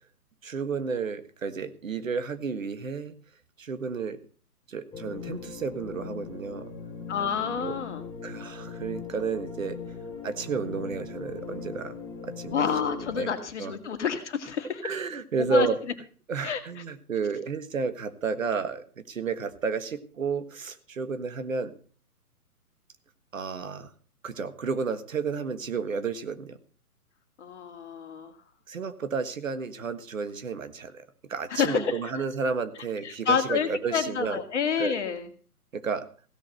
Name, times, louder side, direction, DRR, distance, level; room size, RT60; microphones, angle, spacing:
voice 1, 0.4-3.1 3.6-4.2 4.7-6.7 7.6-7.7 8.2-9.8 10.2-11.9 12.2-12.6 13.1-13.3 13.6-13.7 14.8-15.8 16.3-21.7 23.3-23.9 24.2-26.6 28.7-31.0 31.3-34.4 34.8-35.0 35.7-36.1, right 5 dB, 60° right, 11 dB, 1.7 m, -31 dB
sound 1, 4.9-13.2, left 5 dB, 10° left, 3.5 m, -40 dB
voice 2, 7.1-8.0 12.5-14.9 15.5-15.7 16.4-16.8 27.4-28.4 31.5-32.2 33.0-35.3, left 6 dB, 50° left, 9 dB, 2.3 m, -29 dB
16.5 x 6.5 x 7.8 m, 0.42 s
figure-of-eight pair, 135°, 45 cm